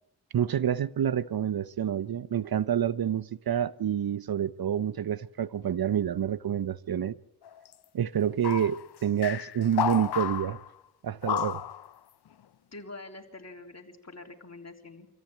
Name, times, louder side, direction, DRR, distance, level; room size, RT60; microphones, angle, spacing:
voice 1, 0.3-7.2 7.9-10.6 11.0-11.6, right 9 dB, 65° right, 0.7 m, -28 dB
sound 1, 7.4-7.7 8.4-8.9 9.2-10.7 11.2-11.9, left 10 dB, 70° left, 0.7 m, -31 dB
voice 2, 12.7-15.1, left 2 dB, 40° left, 3.7 m, -45 dB
25.5 x 14.5 x 9.0 m
cardioid pair, 50°, 40 cm